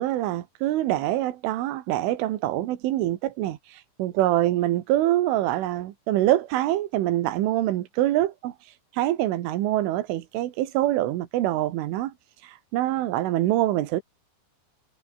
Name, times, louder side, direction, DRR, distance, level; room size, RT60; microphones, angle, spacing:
voice 1, 0.0-14.0, right 14 dB, 80° right, 4.0 m, -25 dB
omnidirectional pair, 5.7 m